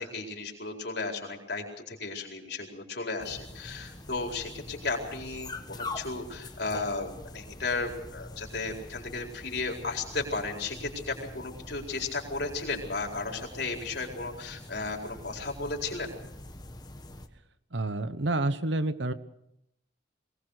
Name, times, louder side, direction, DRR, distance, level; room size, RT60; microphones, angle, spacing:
voice 1, 0.0-16.1, left 3 dB, 60° left, 1 dB, 4.4 m, -34 dB
sound 1, 3.2-17.3, left 2 dB, 20° left, 1.4 m, -44 dB
voice 2, 17.7-19.1, right 2 dB, 70° right, 13 dB, 1.1 m, -28 dB
22.5 x 19.0 x 6.6 m, 0.79 s
head